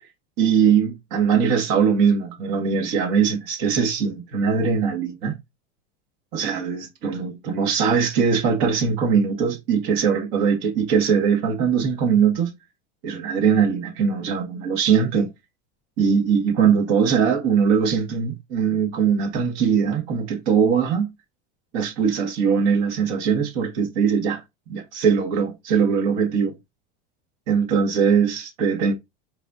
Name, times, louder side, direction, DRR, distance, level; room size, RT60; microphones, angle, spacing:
voice 1, 0.4-5.4 6.3-12.5 13.0-15.3 16.0-21.1 21.7-24.4 24.7-26.6 27.5-28.9, right 6 dB, 60° right, 1.9 m, -21 dB
4.4 x 4.1 x 2.7 m
supercardioid pair, 140°, 35 cm